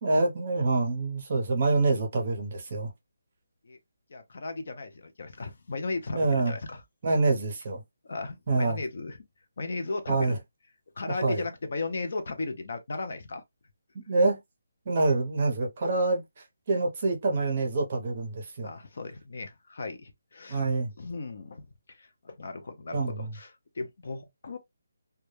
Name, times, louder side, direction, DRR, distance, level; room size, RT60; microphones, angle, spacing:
voice 1, 0.0-2.9 6.1-6.5 7.0-7.8 8.5-8.8 10.1-10.4 11.2-11.4 14.1-14.4 14.9-16.2 16.7-18.7 20.5-20.9 22.9-23.3, right 3 dB, 30° right, 0.7 m, -26 dB
voice 2, 4.1-6.8 8.0-9.2 9.6-10.4 11.0-13.4 18.6-20.6 21.0-21.6 21.9-24.6, left 3 dB, 50° left, 0.5 m, -36 dB
2.2 x 2.1 x 3.0 m
hypercardioid pair, 175°, 0 cm